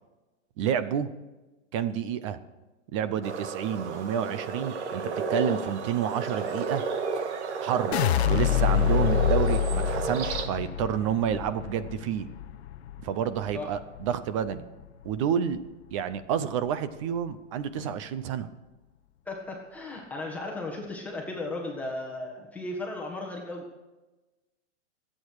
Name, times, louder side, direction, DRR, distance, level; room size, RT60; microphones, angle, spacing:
voice 1, 0.6-1.1 1.7-2.4 2.9-6.8 7.6-8.0 8.3-12.3 13.0-14.6 15.0-15.6 15.9-18.5, right 8 dB, 25° right, 13 dB, 0.6 m, -29 dB
sound 1, 3.2-10.5, right 5 dB, 70° right, 1.8 m, -32 dB
sound 2, 7.9-14.1 14.5-15.1, left 10 dB, 60° left, 0.7 m, -27 dB
voice 2, 19.2-23.6, left 2 dB, 5° left, -2 dB, 1.6 m, -35 dB
25.0 x 8.8 x 4.8 m, 1.1 s
supercardioid pair, 165°, 36 cm